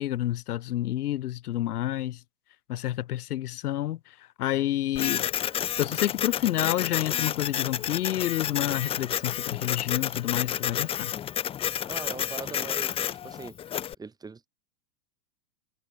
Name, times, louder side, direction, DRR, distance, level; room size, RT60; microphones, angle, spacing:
voice 1, 0.0-2.2 2.7-5.3 5.8-11.1, left 13 dB, 80° left, 1.2 m, -29 dB
Printer, 5.0-13.9, left 10 dB, 15° left, 0.7 m, -30 dB
voice 2, 11.9-13.6 14.0-14.5, right 4 dB, 10° right, 1.6 m, -40 dB
supercardioid pair, 145°, 45 cm